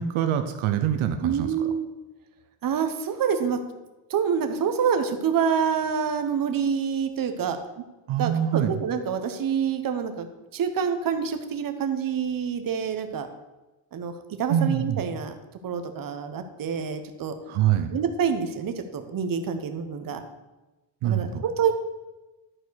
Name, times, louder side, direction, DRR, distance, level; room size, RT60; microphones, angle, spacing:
voice 1, 0.0-1.7 8.1-8.7 14.5-15.0 17.5-17.9 21.0-21.4, right 10 dB, 75° right, 7 dB, 0.9 m, -25 dB
voice 2, 1.2-1.9 2.6-3.6 4.1-7.6 8.2-10.3 10.5-13.3 13.9-14.1 14.4-15.3 15.6-17.3 17.9-20.2 21.0-21.7, right 7 dB, 45° right, 8 dB, 1.1 m, -27 dB
11.0 x 4.5 x 6.4 m, 1.1 s
cardioid pair, 120°, 48 cm